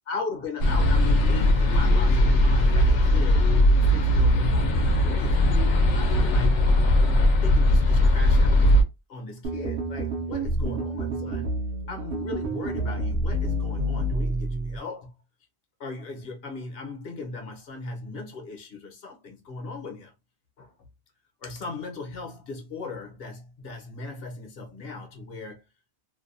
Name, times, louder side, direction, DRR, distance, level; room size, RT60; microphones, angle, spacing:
voice 1, 0.1-6.7 7.0-8.7 9.1-11.5 11.9-15.1 15.8-20.1 20.6-20.7 21.4-25.6, left 3 dB, 60° left, 1.0 m, -38 dB
sound 1, 0.6-8.8, left 1 dB, 85° left, 0.9 m, -19 dB
sound 2, 9.4-14.8, right 1 dB, 60° right, 0.8 m, -29 dB
2.6 x 2.1 x 2.5 m
omnidirectional pair, 1.1 m